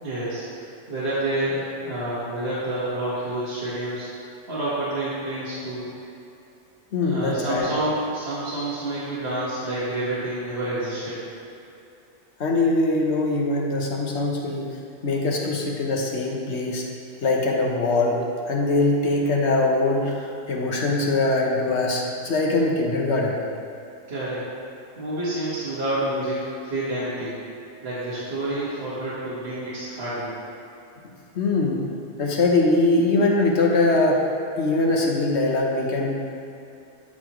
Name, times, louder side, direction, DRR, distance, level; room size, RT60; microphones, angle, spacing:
voice 1, 0.0-5.9 7.0-11.2 24.1-24.5 25.0-27.4 27.8-30.3, right 1 dB, 55° right, -11 dB, 1.6 m, -28 dB
voice 2, 6.9-7.7 12.4-14.7 15.0-16.9 17.2-18.2 18.5-23.4 31.3-31.8 32.2-34.2 34.6-36.2, left 2 dB, 65° left, -1 dB, 1.2 m, -22 dB
12.5 x 4.3 x 3.0 m, 2.7 s
omnidirectional pair, 1.3 m